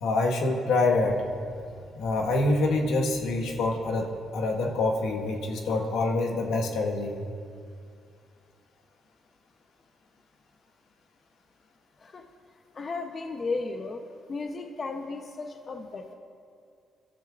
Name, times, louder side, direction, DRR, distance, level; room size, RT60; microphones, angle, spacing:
voice 1, 0.0-1.2 1.9-7.2, left 2 dB, 85° left, 1 dB, 1.6 m, -26 dB
voice 2, 12.7-14.0 14.3-16.1, left 3 dB, 40° left, 4 dB, 0.8 m, -34 dB
27.0 x 12.0 x 2.5 m, 2.3 s
cardioid pair, 90°, 0 cm